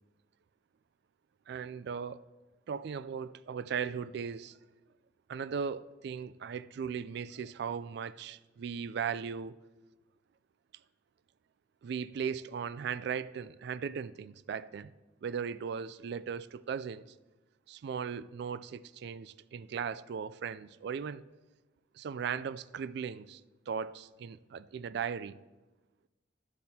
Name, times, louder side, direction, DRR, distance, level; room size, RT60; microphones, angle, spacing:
voice 1, 1.5-2.2 2.7-4.6 5.3-9.6 11.8-14.9 15.2-17.0 17.7-21.2 21.9-23.4 23.7-25.4, right 7 dB, 65° right, 0.3 m, -37 dB
12.0 x 11.5 x 2.8 m
head